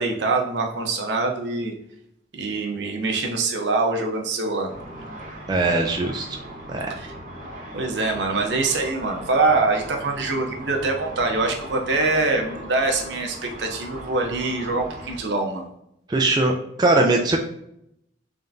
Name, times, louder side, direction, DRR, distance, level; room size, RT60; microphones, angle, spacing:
voice 1, 0.0-1.7 2.3-4.7 6.9-7.1 7.7-15.6, right 3 dB, 75° right, 2 dB, 0.7 m, -24 dB
Car / Traffic noise roadway noise / Engine, 4.7-15.2, right 1 dB, 45° right, 0.8 m, -39 dB
voice 2, 5.5-6.4 6.7-6.9 16.1-16.5 16.8-17.4, right 2 dB, 20° right, 1 dB, 0.3 m, -20 dB
3.6 x 3.4 x 2.6 m, 0.77 s
head